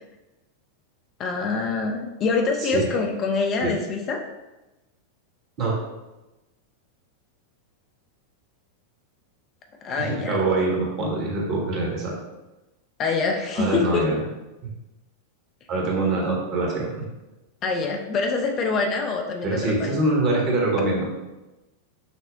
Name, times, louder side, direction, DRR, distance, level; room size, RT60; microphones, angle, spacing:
voice 1, 1.2-4.2 9.8-10.4 13.0-14.1 17.6-20.0, left 4 dB, 30° left, 3 dB, 0.4 m, -25 dB
voice 2, 10.0-12.1 13.5-14.2 15.7-16.9 19.4-21.1, right 2 dB, 40° right, -2 dB, 1.0 m, -24 dB
5.8 x 2.0 x 2.6 m, 1.0 s
figure-of-eight pair, 90°, 0 cm